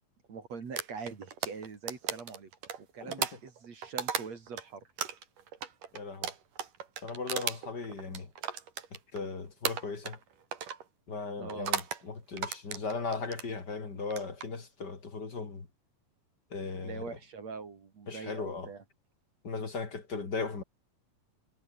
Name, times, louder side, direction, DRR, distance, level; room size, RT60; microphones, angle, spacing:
voice 1, 0.3-2.5 2.9-4.9 11.4-11.7 16.8-18.8, right 5 dB, 50° right, 4.1 m, -43 dB
sound 1, 0.8-4.6 5.0-9.3 9.6-10.2 10.5-10.8 11.5-12.0 12.4-13.5 14.0-14.5, right 8 dB, 65° right, 4.2 m, -36 dB
voice 2, 5.9-6.3 7.0-8.3 9.1-10.2 11.1-15.7 16.5-17.2 18.1-18.7 19.4-20.6, left 4 dB, 30° left, 3.1 m, -37 dB
omnidirectional pair, 4.0 m